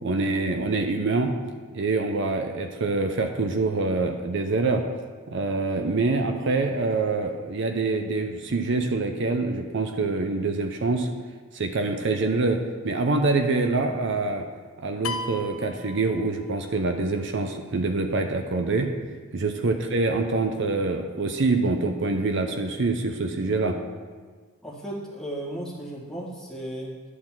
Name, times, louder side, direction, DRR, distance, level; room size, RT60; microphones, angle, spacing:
voice 1, 0.0-1.3 1.7-4.8 5.3-11.1 11.5-12.6 12.8-14.5 14.8-18.9 19.3-23.8, right 3 dB, 60° right, 5 dB, 0.6 m, -25 dB
sound 1, 15.0-16.7, left 2 dB, 80° left, 0.6 m, -35 dB
voice 2, 24.6-27.0, right 1 dB, 5° left, -5 dB, 1.7 m, -35 dB
11.0 x 4.1 x 7.3 m, 1.5 s
head